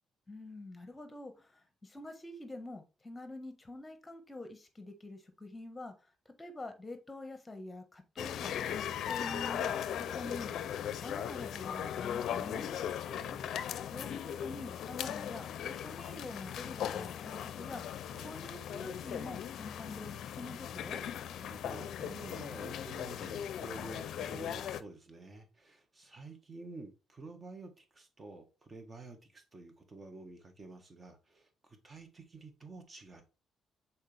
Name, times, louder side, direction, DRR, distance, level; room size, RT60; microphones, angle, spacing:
voice 1, 0.3-5.9 6.4-8.5 9.0-10.6 11.0-12.7 13.9-17.8 18.2-21.0, left 2 dB, 20° left, 1.4 m, -46 dB
sound 1, 8.2-24.8, left 9 dB, 75° left, 0.5 m, -38 dB
voice 2, 13.0-13.5 18.1-18.3 21.4-33.2, right 3 dB, 30° right, 1.6 m, -50 dB
6.5 x 4.3 x 3.4 m
cardioid pair, 90°, 0 cm